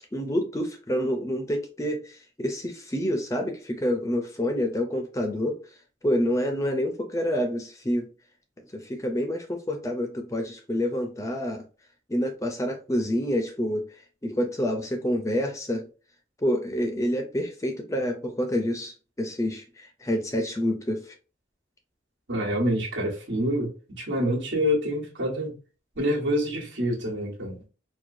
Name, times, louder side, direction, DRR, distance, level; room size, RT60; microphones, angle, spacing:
voice 1, 0.1-5.6 6.0-8.1 8.7-11.6 12.1-15.9 16.4-21.2, equal, 15° left, 0.4 m, -28 dB
voice 2, 22.3-25.5 26.0-27.6, equal, 90° right, 1.4 m, -27 dB
4.5 x 2.2 x 2.6 m
head